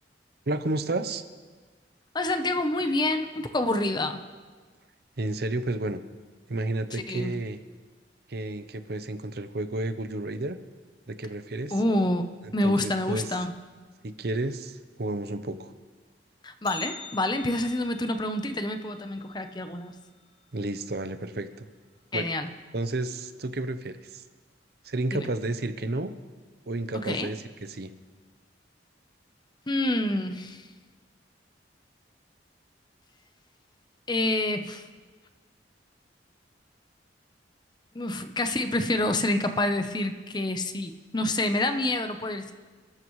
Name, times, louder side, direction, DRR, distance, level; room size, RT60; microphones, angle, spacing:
voice 1, 0.5-1.2 5.2-6.0 6.5-7.6 8.3-10.6 11.1-11.7 12.6-13.2 14.0-15.7 20.5-21.7 22.1-22.3 22.7-24.2 24.8-26.1 26.7-27.9, right 2 dB, 60° right, 11 dB, 0.8 m, -31 dB
voice 2, 2.1-4.2 6.9-7.3 11.7-13.6 16.4-19.9 22.1-22.5 25.1-25.3 27.0-27.3 29.7-30.7 34.1-34.9 37.9-42.5, left 1 dB, 25° left, 7 dB, 0.8 m, -27 dB
Bell, 16.6-20.7 21.0-21.1 21.6-21.7 22.5-22.6 23.4-23.6 24.0-24.1, left 3 dB, 90° left, 3.1 m, -46 dB
27.5 x 13.5 x 3.2 m, 1.4 s
head